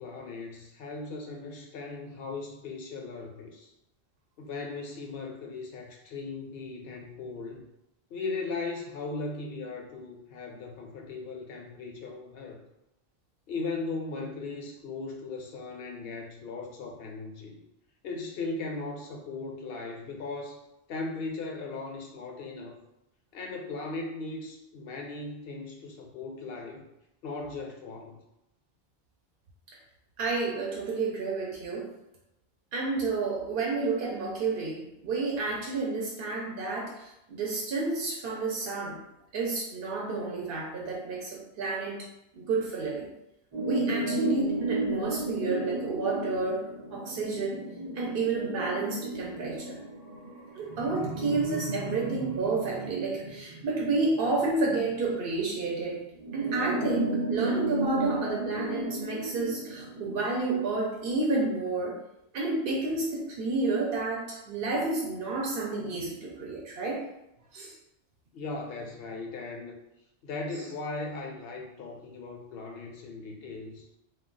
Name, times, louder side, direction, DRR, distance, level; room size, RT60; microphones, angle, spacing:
voice 1, 0.0-3.7 4.4-7.6 8.1-12.6 13.5-17.6 18.0-20.6 20.9-22.7 23.3-26.8 27.2-28.2 68.3-69.8 70.2-73.9, left 3 dB, 70° left, 1 dB, 0.7 m, -38 dB
voice 2, 30.2-31.9 32.7-39.0 39.3-42.1 42.3-43.1 43.6-46.6 46.9-47.6 47.9-49.8 50.5-56.0 56.3-62.0 62.3-67.0 67.5-67.7, right 3 dB, 65° right, -2 dB, 0.8 m, -30 dB
sound 1, 43.5-55.3 56.2-60.2, right 2 dB, 30° right, 0.5 m, -34 dB
2.2 x 2.2 x 3.7 m, 0.85 s
omnidirectional pair, 1.1 m